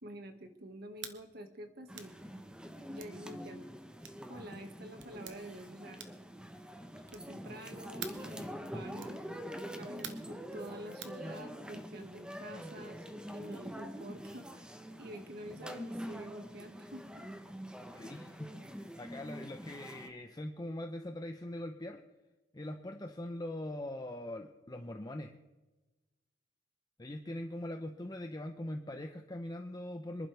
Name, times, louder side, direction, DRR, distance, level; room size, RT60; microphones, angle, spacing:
voice 1, 0.0-2.1 2.9-3.7 4.3-6.0 7.1-9.2 9.7-13.1 13.3-14.7 15.0-17.2, right 1 dB, 60° right, 5 dB, 1.9 m, -48 dB
sound 1, 1.0-1.2 1.9-2.2 3.0-3.2 4.0-4.2 5.0-5.4 6.0-6.3 7.0-7.4 8.0-8.3 9.0-9.2 10.0-10.3 11.0-11.2, right 8 dB, 75° right, 1.4 m, -46 dB
sound 2, 1.9-20.1, equal, 5° right, 1.0 m, -45 dB
voice 2, 17.9-22.0 22.5-25.3 27.0-30.3, left 1 dB, 20° left, 5 dB, 0.8 m, -42 dB
26.0 x 11.5 x 3.5 m, 1.1 s
head